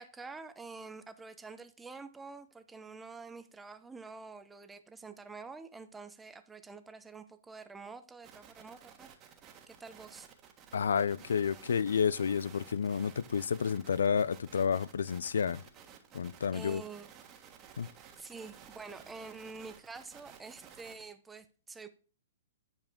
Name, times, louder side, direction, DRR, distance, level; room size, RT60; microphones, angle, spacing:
voice 1, 0.0-9.1 9.7-10.3 16.5-17.1 18.2-21.9, right 4 dB, 10° right, 0.8 m, -47 dB
sound 1, 8.2-21.1, right 8 dB, 30° right, 1.6 m, -55 dB
voice 2, 10.7-15.6 16.1-16.8 17.8-17.9, left 7 dB, 75° left, 0.3 m, -30 dB
10.5 x 5.0 x 3.6 m
hypercardioid pair, 125°, 0 cm